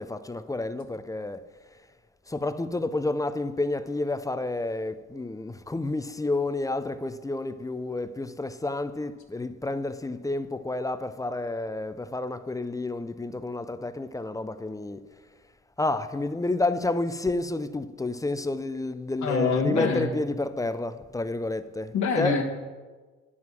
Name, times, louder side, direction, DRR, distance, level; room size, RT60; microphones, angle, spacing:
voice 1, 0.0-1.5 2.3-15.0 15.8-22.3, left 2 dB, 10° left, 0.4 m, -30 dB
voice 2, 19.2-20.2 21.9-22.4, left 4 dB, 70° left, 1.3 m, -25 dB
9.4 x 6.0 x 6.0 m
cardioid pair, 90°, 30 cm